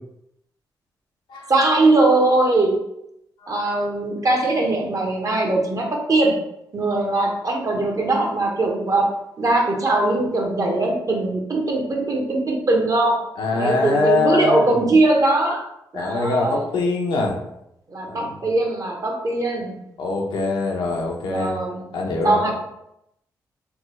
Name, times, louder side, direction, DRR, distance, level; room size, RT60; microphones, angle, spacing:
voice 1, 1.5-2.8 3.5-6.4 6.7-9.1 9.4-15.7 15.9-16.6 17.9-19.8 21.2-21.8 22.2-22.5, right 2 dB, 45° right, 1 dB, 0.8 m, -20 dB
voice 2, 13.4-14.7 15.9-17.4 18.1-18.4 20.0-21.6 21.9-22.5, left 3 dB, 75° left, 0 dB, 0.6 m, -23 dB
3.3 x 2.1 x 3.0 m, 0.81 s
supercardioid pair, 50°, 8 cm